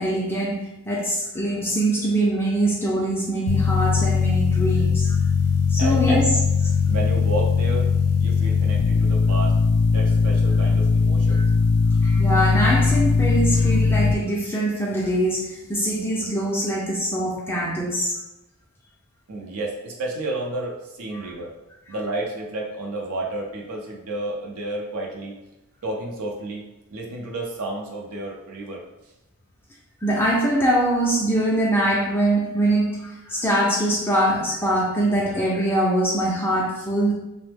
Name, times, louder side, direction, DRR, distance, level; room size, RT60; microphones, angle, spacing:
voice 1, 0.0-5.1 5.7-6.3 11.3-11.5 12.0-18.1 21.1-21.3 30.0-37.1, right 1 dB, 10° left, -5 dB, 0.4 m, -23 dB
sound 1, 3.5-14.1, left 4 dB, 90° left, 0.3 m, -19 dB
voice 2, 5.8-6.2 6.8-9.6 9.9-11.4 19.3-21.5 21.9-25.3 25.8-26.6 26.9-28.8, right 2 dB, 75° right, -1 dB, 0.5 m, -31 dB
3.0 x 2.0 x 3.2 m, 0.94 s
head